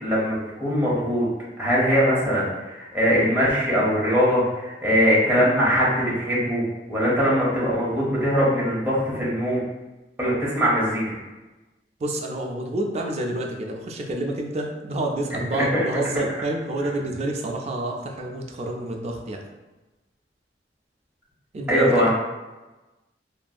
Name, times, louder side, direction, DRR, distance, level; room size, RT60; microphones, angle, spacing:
voice 1, 0.0-1.3 1.6-6.6 6.9-9.6 10.2-11.1 15.5-15.8 21.7-22.1, equal, 10° right, -6 dB, 0.7 m, -21 dB
voice 2, 12.0-19.4 21.5-22.1, right 2 dB, 40° right, 1 dB, 0.3 m, -28 dB
2.6 x 2.5 x 2.3 m, 1.1 s
head